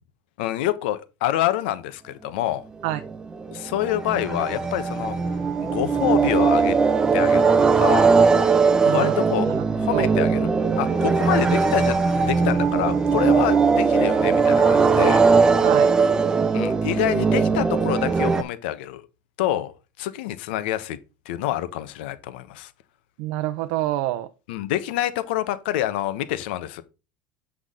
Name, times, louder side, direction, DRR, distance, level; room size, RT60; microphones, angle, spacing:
voice 1, 0.4-2.6 3.5-5.2 5.6-6.8 7.1-8.1 8.9-9.5 9.8-10.5 10.8-11.9 12.2-15.2 16.5-19.1 19.4-19.7 20.0-21.0 21.2-22.7 24.5-26.8, left 13 dB, 80° left, 1.1 m, -26 dB
sound 1, 2.9-18.4, right 5 dB, 10° right, 0.6 m, -20 dB
voice 2, 23.2-24.3, right 15 dB, 55° right, 0.6 m, -26 dB
8.2 x 6.2 x 3.8 m
cardioid pair, 175°, 5 cm